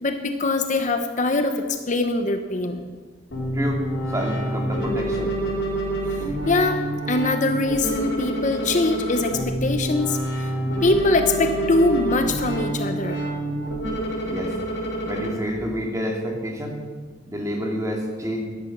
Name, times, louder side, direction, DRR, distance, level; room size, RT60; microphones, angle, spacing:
voice 1, 0.0-2.9 6.5-10.5 10.8-13.2, left 2 dB, 40° left, 6 dB, 0.9 m, -23 dB
sound 1, 3.3-15.3, right 1 dB, 70° left, 5.1 m, -27 dB
voice 2, 4.1-5.3 14.2-14.6 15.1-16.8 17.3-18.4, equal, 20° right, 0 dB, 2.5 m, -28 dB
14.5 x 11.5 x 6.0 m, 1.4 s
head